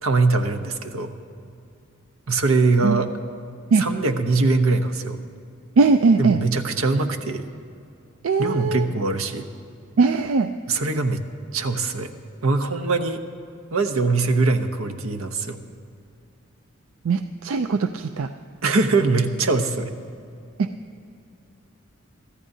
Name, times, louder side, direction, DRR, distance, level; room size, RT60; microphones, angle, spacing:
voice 1, 0.0-1.1 2.3-3.1 3.7-5.2 6.2-7.5 8.4-9.5 10.7-11.2 11.5-12.1 12.4-13.2 13.7-15.6 18.6-19.9, right 3 dB, 85° right, 7 dB, 0.9 m, -22 dB
voice 2, 5.8-6.4 8.2-8.9 10.0-10.5 17.1-18.3, right 4 dB, 70° right, 8 dB, 0.4 m, -20 dB
23.0 x 14.0 x 2.7 m, 2.6 s
head